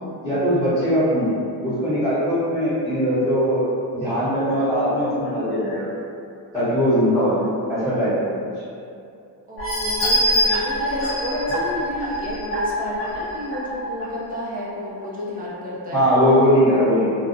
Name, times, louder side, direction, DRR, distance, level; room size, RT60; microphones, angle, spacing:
voice 1, 0.2-1.3 1.6-3.6 3.9-5.9 6.5-8.4 15.9-17.1, equal, 10° left, -18 dB, 1.1 m, -20 dB
voice 2, 9.5-16.0, left 1 dB, 20° right, -6 dB, 0.5 m, -30 dB
sound 1, 9.6-14.1 14.5-14.6 15.0-15.1, equal, 30° left, 0.6 m, -24 dB
2.4 x 2.0 x 2.5 m, 2.6 s
cardioid pair, 130°, 41 cm